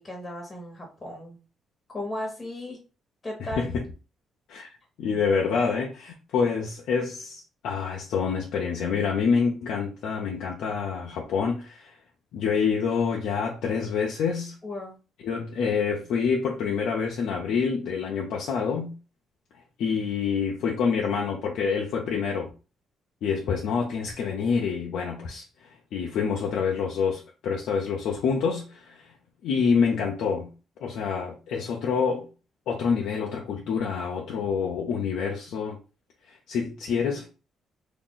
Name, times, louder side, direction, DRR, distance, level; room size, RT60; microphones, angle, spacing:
voice 1, 0.0-1.4 1.9-2.8 3.2-3.7 14.6-14.9, left 1 dB, 20° left, 1.2 m, -35 dB
voice 2, 3.4-3.8 4.5-4.7 5.0-12.0 12.3-14.6 15.2-18.9 19.8-22.5 23.2-29.1 29.4-30.5 30.8-32.3 32.7-35.8 36.3-37.3, left 6 dB, 80° left, 0.6 m, -27 dB
2.9 x 2.4 x 3.8 m
cardioid pair, 90°, 0 cm